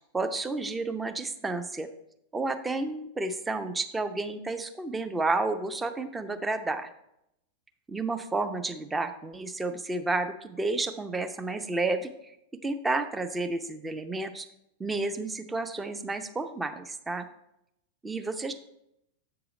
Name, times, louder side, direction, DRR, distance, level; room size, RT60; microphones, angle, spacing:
voice 1, 0.1-1.9 2.3-6.9 7.9-12.1 12.6-14.5 14.8-17.3 18.0-18.5, right 3 dB, 10° right, 8 dB, 0.6 m, -31 dB
8.2 x 4.8 x 4.9 m, 0.81 s
figure-of-eight pair, 90°, 0 cm